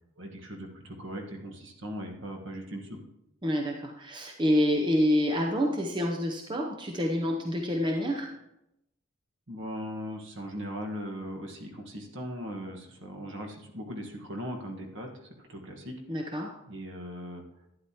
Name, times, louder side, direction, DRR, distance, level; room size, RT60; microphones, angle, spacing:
voice 1, 0.2-3.0 9.5-16.0 16.6-17.4, equal, 60° right, 1 dB, 1.5 m, -39 dB
voice 2, 3.4-8.3 16.1-16.6, equal, 20° right, 1 dB, 0.6 m, -27 dB
12.0 x 9.6 x 2.9 m, 0.86 s
head